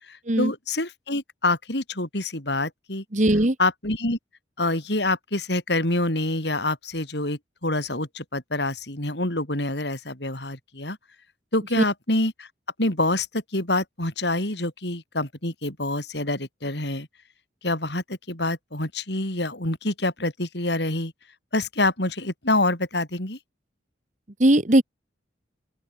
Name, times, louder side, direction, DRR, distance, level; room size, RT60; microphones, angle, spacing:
voice 1, 0.0-3.0 3.6-4.2 4.6-11.0 11.5-12.5 12.8-17.1 17.6-21.1 21.5-23.4, left 2 dB, 65° left, 5.6 m, -26 dB
voice 2, 3.1-3.5 24.4-24.8, right 1 dB, 40° right, 1.5 m, -18 dB
open air
head